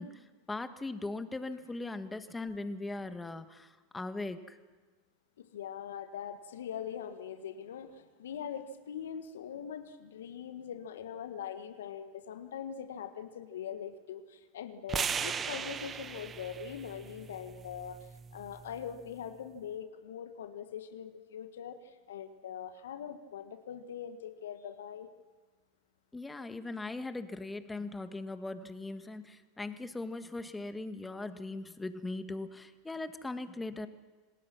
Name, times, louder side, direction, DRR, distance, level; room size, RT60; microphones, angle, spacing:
voice 1, 0.0-4.6 26.1-33.9, left 2 dB, 10° left, 9 dB, 1.8 m, -39 dB
voice 2, 5.4-18.0 18.3-21.8 22.1-25.1, left 8 dB, 75° left, 9 dB, 1.6 m, -42 dB
sound 1, 14.9-19.1, right 6 dB, 30° right, 1.1 m, -38 dB
27.5 x 19.0 x 6.1 m, 1.3 s
hypercardioid pair, 85°, 0 cm